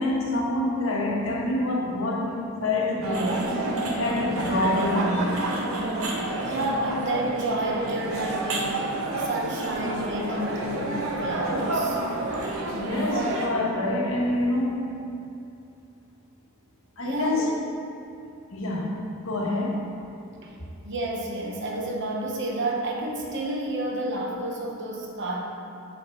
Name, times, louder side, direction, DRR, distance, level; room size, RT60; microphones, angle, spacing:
voice 1, 0.0-3.4 3.9-5.4 12.7-14.9 17.0-17.5 18.5-19.9, left 1 dB, 70° left, -2 dB, 1.0 m, -26 dB
sound 1, 3.0-13.5, right 2 dB, 75° right, 0.9 m, -29 dB
voice 2, 6.4-12.0 17.0-17.5 20.4-20.6 20.8-25.4, right 1 dB, 55° right, -1 dB, 0.9 m, -30 dB
6.4 x 4.4 x 4.5 m, 2.7 s
head